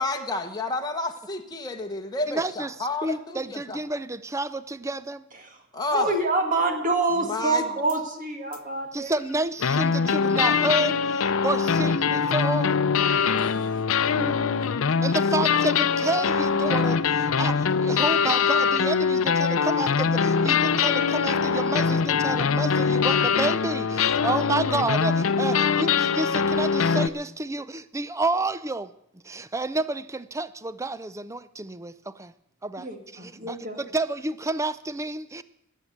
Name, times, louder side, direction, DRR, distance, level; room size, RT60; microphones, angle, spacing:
voice 1, 0.0-3.8 5.7-6.1 7.2-7.6, left 2 dB, 20° left, 3 dB, 1.0 m, -30 dB
voice 2, 2.3-5.2 8.9-12.8 15.0-28.9 29.2-32.3 32.6-35.4, right 2 dB, 15° right, 15 dB, 0.5 m, -30 dB
voice 3, 5.4-9.1 13.4-13.5 14.1-14.4 32.8-33.8, right 2 dB, 40° right, 3 dB, 2.0 m, -27 dB
sound 1, 7.9-8.0 8.5-8.6 9.6-27.1, left 6 dB, 80° left, 0.6 m, -23 dB
18.5 x 7.5 x 8.0 m, 0.82 s
head